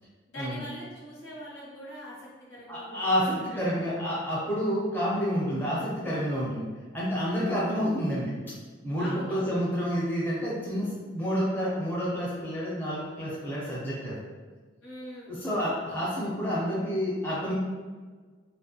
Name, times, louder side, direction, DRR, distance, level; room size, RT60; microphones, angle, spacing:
voice 1, 0.3-3.7 9.0-9.6 14.8-15.3, equal, 90° left, -7 dB, 1.2 m, -43 dB
voice 2, 2.7-6.7 6.9-8.4 8.8-14.2 15.3-17.5, equal, 10° left, -7 dB, 0.5 m, -29 dB
2.6 x 2.1 x 2.7 m, 1.5 s
head